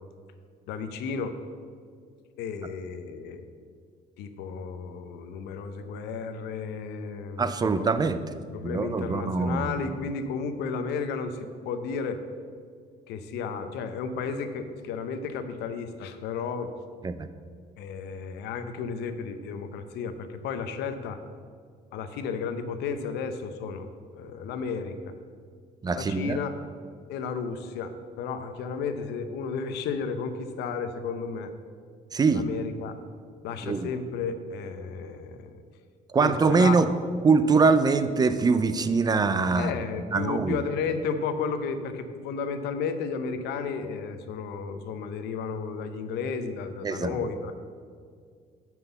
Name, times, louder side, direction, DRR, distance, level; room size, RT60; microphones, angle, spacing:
voice 1, 0.7-1.4 2.4-3.4 4.2-7.8 8.1-8.2 8.5-12.2 13.1-16.7 17.8-21.2 21.9-23.9 24.1-25.1 25.9-26.5 27.1-31.5 32.3-32.9 33.4-35.5 36.2-36.9 39.5-47.5, left 5 dB, 80° left, 9 dB, 0.7 m, -33 dB
voice 2, 7.4-8.2 8.6-9.8 17.0-17.1 25.8-26.4 32.1-32.4 33.6-33.9 36.1-36.9 37.2-39.7 40.1-40.6 46.8-47.2, right 4 dB, 25° right, 11 dB, 0.4 m, -23 dB
6.0 x 5.5 x 6.9 m, 2.1 s
cardioid pair, 110°, 17 cm